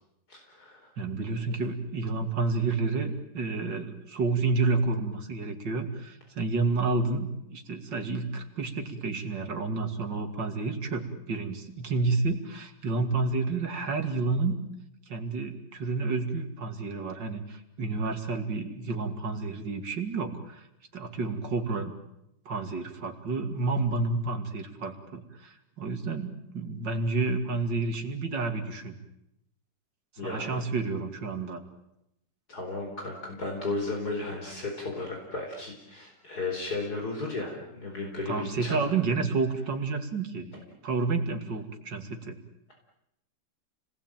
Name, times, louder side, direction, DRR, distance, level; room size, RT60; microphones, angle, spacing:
voice 1, 0.3-0.9 30.2-30.6 32.5-38.8, left 3 dB, 60° left, 1 dB, 5.0 m, -34 dB
voice 2, 1.0-14.6 15.1-20.7 20.9-21.9 22.4-28.9 30.2-31.6 38.3-40.5 40.8-42.4, right 3 dB, 90° right, 6 dB, 3.2 m, -30 dB
30.0 x 20.0 x 9.1 m, 0.83 s
omnidirectional pair, 1.9 m